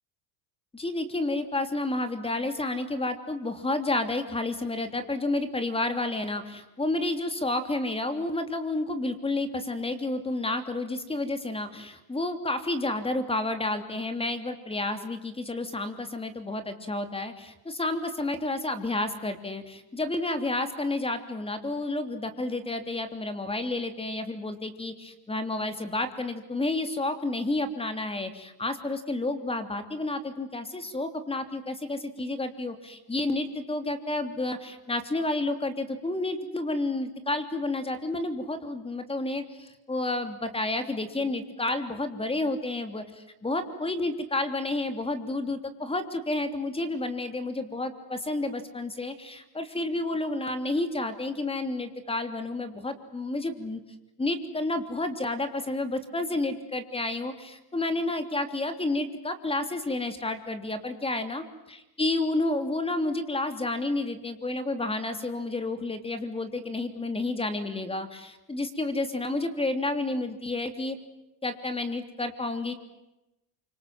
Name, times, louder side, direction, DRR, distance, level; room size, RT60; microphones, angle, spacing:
voice 1, 0.7-53.8 54.2-71.0 71.4-72.7, left 2 dB, 10° left, 8 dB, 3.1 m, -30 dB
29.0 x 25.5 x 7.8 m, 0.95 s
supercardioid pair, 120°, 48 cm